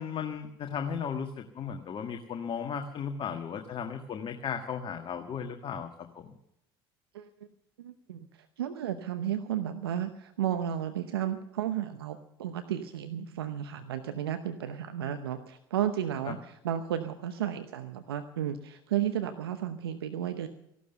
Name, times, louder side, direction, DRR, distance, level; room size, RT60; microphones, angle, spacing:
voice 1, 0.0-6.3 16.3-16.4, left 7 dB, 45° left, 5 dB, 1.7 m, -36 dB
voice 2, 7.8-20.5, right 10 dB, 85° right, 9 dB, 0.8 m, -33 dB
16.0 x 12.5 x 6.9 m, 0.82 s
hypercardioid pair, 65°, 12 cm